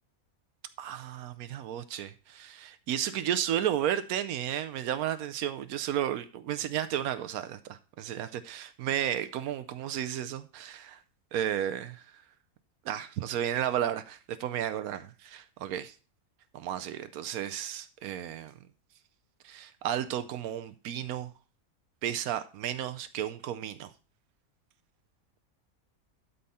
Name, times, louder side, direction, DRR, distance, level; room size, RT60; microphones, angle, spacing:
voice 1, 0.8-11.0 11.3-12.0 12.8-15.9 16.5-18.5 19.4-21.3 22.0-23.9, right 10 dB, 90° right, 1.1 m, -33 dB
12.0 x 5.6 x 4.2 m
omnidirectional pair, 1.5 m